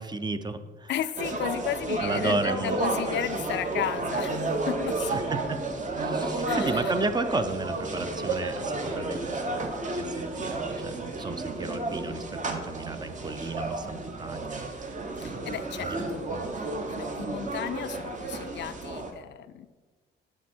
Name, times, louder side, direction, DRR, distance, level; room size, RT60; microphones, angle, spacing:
voice 1, 0.0-0.9 2.0-2.8 5.1-5.4 6.0-14.6 15.3-15.4 15.7-16.0 16.3-16.5, right 3 dB, 20° right, 10 dB, 0.5 m, -33 dB
voice 2, 0.9-5.2 6.5-6.9 15.2-16.3 16.5-19.7, left 11 dB, 65° left, 13 dB, 0.4 m, -34 dB
sound 1, 1.2-19.1, right 2 dB, 40° right, 1.0 m, -32 dB
11.0 x 3.6 x 4.4 m, 1.3 s
cardioid pair, 90°, 20 cm